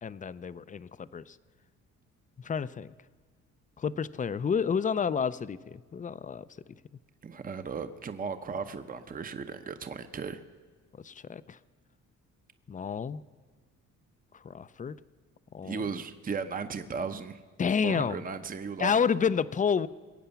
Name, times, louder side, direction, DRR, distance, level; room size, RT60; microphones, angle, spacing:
voice 1, 0.0-1.4 2.4-2.9 3.8-6.4 11.0-11.6 12.7-13.2 14.4-15.0 15.5-15.8 17.6-18.2 18.8-19.9, left 6 dB, 25° left, 16 dB, 0.5 m, -29 dB
voice 2, 7.2-10.4 15.6-17.4 17.8-19.1, right 5 dB, 30° right, 9 dB, 0.8 m, -36 dB
21.5 x 8.7 x 7.0 m, 1.5 s
cardioid pair, 90°, 30 cm